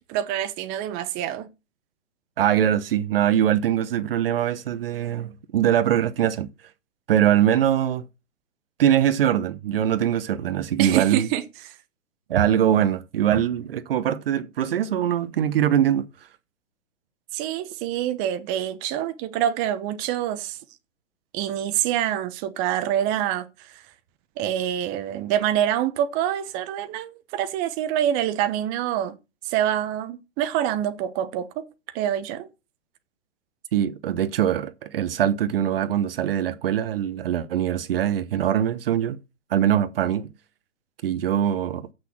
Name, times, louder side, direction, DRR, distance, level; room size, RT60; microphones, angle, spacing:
voice 1, 0.1-1.5 10.8-11.8 17.3-20.6 21.3-23.8 24.4-29.2 29.4-31.6 31.9-32.5, right 11 dB, 25° right, 0.9 m, -26 dB
voice 2, 2.4-6.5 7.1-8.0 8.8-11.3 12.3-16.1 33.7-39.2 39.5-40.3 41.0-41.9, right 10 dB, 50° right, 0.9 m, -22 dB
8.2 x 6.3 x 6.0 m
figure-of-eight pair, 125°, 37 cm